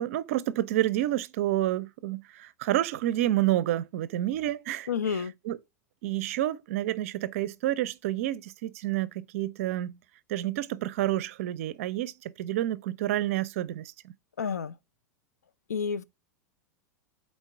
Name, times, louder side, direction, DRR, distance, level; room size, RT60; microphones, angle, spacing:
voice 1, 0.0-4.9 5.5-5.6 6.0-10.0 10.3-14.1, right 14 dB, 55° right, 0.5 m, -29 dB
voice 2, 4.9-5.3 14.4-14.8 15.7-16.0, left 6 dB, 75° left, 0.4 m, -29 dB
4.4 x 4.2 x 5.5 m
figure-of-eight pair, 90°, 9 cm